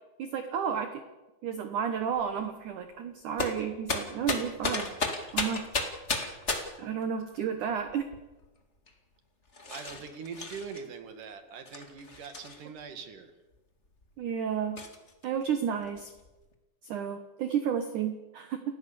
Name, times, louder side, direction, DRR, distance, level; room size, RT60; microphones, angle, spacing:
voice 1, 0.2-1.0 1.4-4.9 5.3-5.7 6.8-8.1 14.2-14.8 15.2-16.1 16.8-18.6, right 8 dB, 75° right, 8 dB, 1.9 m, -32 dB
sound 1, 2.1-2.4 3.4-6.9 7.7-8.4 8.9-9.0 9.5-10.8 11.6-12.8 13.5-13.6 14.0-14.1 14.8-15.2 15.6-16.5, left 3 dB, 40° left, 0.9 m, -34 dB
voice 2, 9.7-13.3, right 5 dB, 55° right, 7 dB, 3.0 m, -42 dB
29.0 x 16.0 x 7.0 m, 1.1 s
omnidirectional pair, 5.3 m